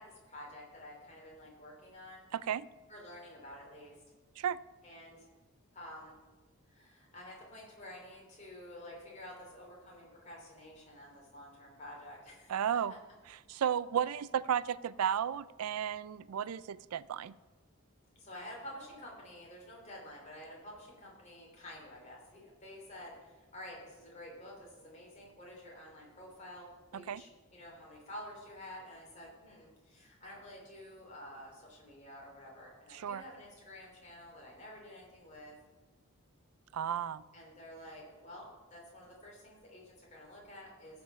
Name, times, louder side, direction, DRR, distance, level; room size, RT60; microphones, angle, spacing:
voice 1, 0.0-2.3 2.9-4.0 4.8-5.3 5.7-6.2 6.7-12.8 18.1-35.5 37.3-41.0, left 1 dB, 30° left, -2 dB, 3.0 m, -50 dB
voice 2, 2.3-2.7 4.4-4.6 12.5-12.9 13.5-17.3 26.9-27.2 32.9-33.2 36.7-37.2, right 8 dB, 85° right, 18 dB, 0.4 m, -33 dB
15.5 x 5.2 x 5.6 m, 1.3 s
head